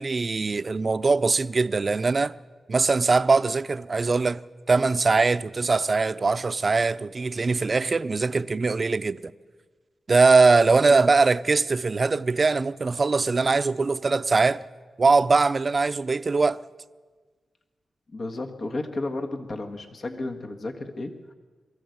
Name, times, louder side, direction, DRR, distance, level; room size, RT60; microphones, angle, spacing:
voice 1, 0.0-2.4 2.7-4.4 4.7-9.3 10.1-14.6 15.0-16.6, right 4 dB, 45° right, 0.6 m, -21 dB
voice 2, 10.7-11.0 18.1-21.3, left 2 dB, 60° left, 1.6 m, -33 dB
23.0 x 14.5 x 8.0 m
cardioid pair, 65°, 0 cm